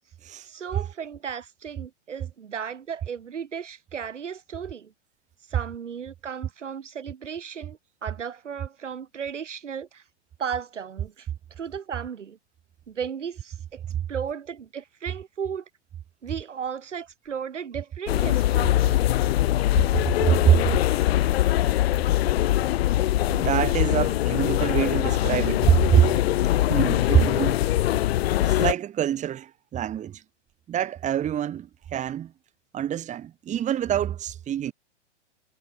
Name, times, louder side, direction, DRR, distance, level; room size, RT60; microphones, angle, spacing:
voice 1, 0.4-4.9 5.5-10.0 10.4-11.3 11.6-12.4 12.9-13.8 14.1-15.6 16.2-18.9, right 7 dB, 75° right, 6.4 m, -35 dB
sound 1, 18.1-28.7, left 14 dB, 60° left, 0.5 m, -22 dB
voice 2, 20.3-20.7 21.4-21.8 23.3-26.1 26.7-27.6 28.4-30.2 30.7-32.3 32.7-34.7, right 10 dB, 20° right, 2.7 m, -24 dB
hypercardioid pair, 125°, 36 cm